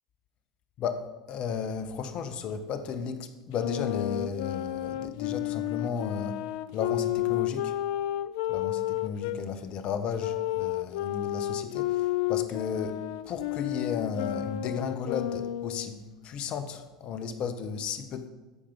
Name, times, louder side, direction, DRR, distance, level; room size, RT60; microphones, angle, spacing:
voice 1, 0.8-6.4 6.7-7.8 8.5-13.0 13.3-18.3, left 6 dB, 45° left, 10 dB, 0.8 m, -34 dB
Wind instrument woodwind instrument, 3.5-9.4 10.2-15.9, left 14 dB, 65° left, 0.3 m, -31 dB
13.5 x 5.0 x 3.5 m, 1.2 s
hypercardioid pair, 75°, 2 cm